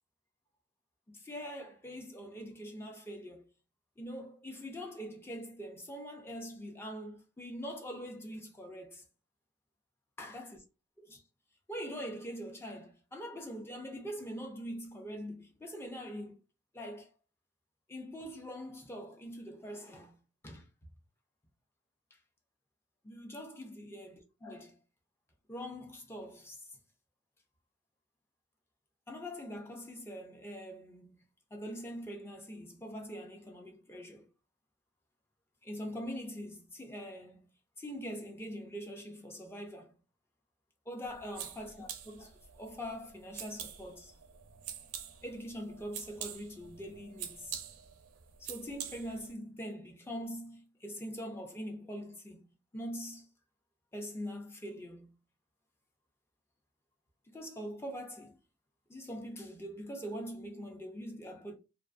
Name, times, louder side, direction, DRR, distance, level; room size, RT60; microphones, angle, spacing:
voice 1, 1.1-3.4 4.0-9.0 10.2-10.6 11.0-11.2 11.7-16.4 16.7-17.1 17.9-20.2 20.4-20.7 22.1-22.2 23.0-24.8 25.5-26.8 29.1-31.2 31.5-34.3 35.6-37.5 37.8-39.9 40.9-44.1 45.2-47.5 48.4-52.5 52.7-53.3 53.9-55.1 57.3-58.4 58.9-61.5, equal, 10° left, 0.4 m, -43 dB
sound 1, 41.0-49.3, right 9 dB, 80° right, 0.4 m, -46 dB
2.4 x 2.3 x 2.4 m
head